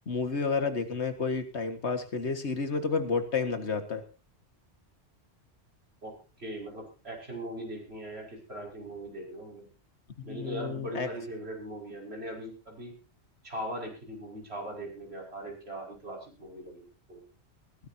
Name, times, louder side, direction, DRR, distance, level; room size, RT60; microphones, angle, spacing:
voice 1, 0.1-4.0 10.2-11.1, left 4 dB, 85° left, 7 dB, 2.1 m, -30 dB
voice 2, 6.0-9.7 10.2-12.9 13.4-17.2, right 1 dB, 70° right, 0 dB, 6.1 m, -40 dB
21.0 x 16.0 x 2.8 m, 0.34 s
omnidirectional pair, 1.1 m